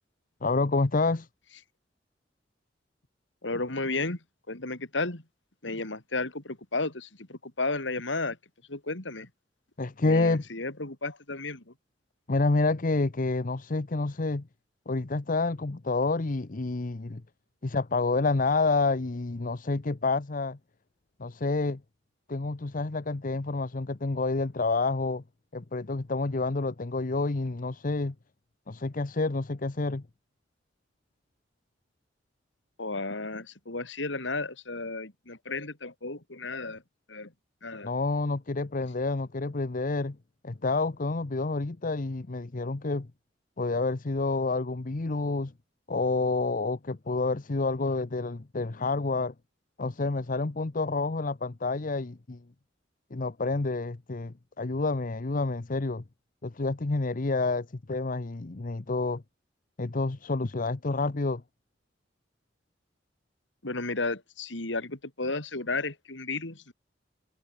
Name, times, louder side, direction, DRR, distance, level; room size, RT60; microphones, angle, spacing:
voice 1, 0.4-1.3 9.8-10.4 12.3-14.4 14.9-17.2 17.6-20.6 21.2-21.8 22.3-25.2 25.5-28.1 28.7-30.0 37.8-40.2 40.4-43.1 43.6-45.5 45.9-49.3 49.8-52.4 53.1-56.0 56.4-59.2 59.8-61.4, left 3 dB, 45° left, 0.8 m, -28 dB
voice 2, 3.4-5.2 5.6-8.4 8.7-9.3 10.0-11.7 32.8-36.8 37.1-37.3 37.6-37.9 63.6-66.7, left 3 dB, 80° left, 3.3 m, -33 dB
head